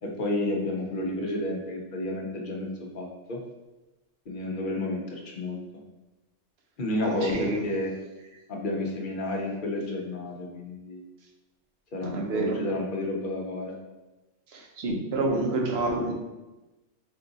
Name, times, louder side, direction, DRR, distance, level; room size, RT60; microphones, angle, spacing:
voice 1, 0.0-3.4 4.3-5.6 6.8-7.9 8.5-11.0 11.9-13.7, left 1 dB, 50° left, 0 dB, 0.9 m, -31 dB
voice 2, 7.0-7.6 12.0-12.6 14.5-16.1, right 2 dB, 60° right, 1 dB, 1.0 m, -28 dB
4.6 x 2.4 x 3.9 m, 1.1 s
omnidirectional pair, 1.3 m